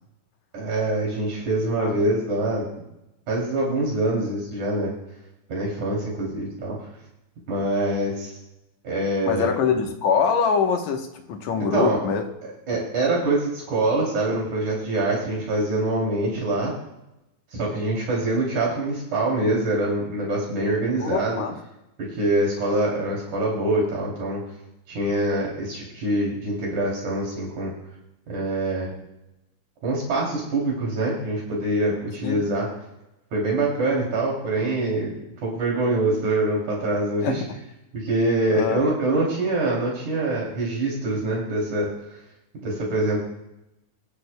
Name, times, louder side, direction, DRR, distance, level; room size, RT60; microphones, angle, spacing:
voice 1, 0.5-2.7 3.3-4.9 5.5-6.8 7.5-8.3 8.8-9.5 11.6-12.0 12.7-16.7 17.5-21.4 22.0-24.4 24.9-27.7 28.3-28.9 29.8-32.7 33.3-35.1 35.4-37.4 37.9-41.9 42.6-43.2, right 2 dB, 70° right, -4 dB, 4.3 m, -24 dB
voice 2, 9.3-12.2 21.0-21.6 32.2-32.5 37.2-37.5 38.5-38.8, left 6 dB, 70° left, 4 dB, 2.3 m, -24 dB
22.5 x 11.5 x 2.2 m, 0.90 s
omnidirectional pair, 3.5 m